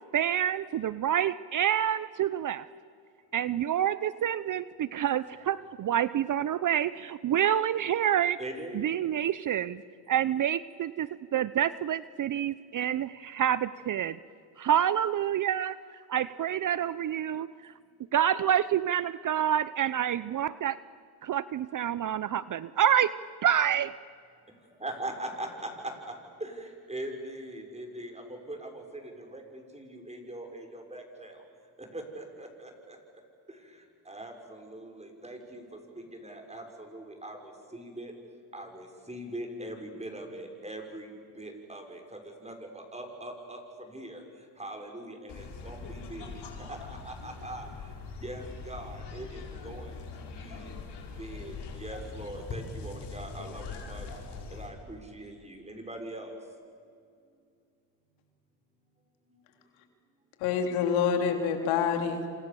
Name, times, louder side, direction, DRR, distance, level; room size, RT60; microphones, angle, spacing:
voice 1, 0.1-2.7 3.3-8.4 8.7-9.8 10.1-14.2 14.6-15.8 16.1-17.7 18.1-20.8 21.2-23.1 23.4-23.9, right 10 dB, 40° right, 17 dB, 0.7 m, -27 dB
voice 2, 8.4-8.9 17.5-17.7 24.6-31.5 31.8-33.0 33.5-38.1 38.5-50.7 51.2-54.1 54.5-56.5 59.3-59.4, right 1 dB, 15° right, 3 dB, 6.2 m, -42 dB
sound 1, 45.3-54.7, left 4 dB, 60° left, 5.6 m, -42 dB
voice 3, 60.4-62.3, left 7 dB, 90° left, 5 dB, 3.3 m, -27 dB
28.5 x 27.0 x 7.0 m, 2.2 s
supercardioid pair, 85°, 46 cm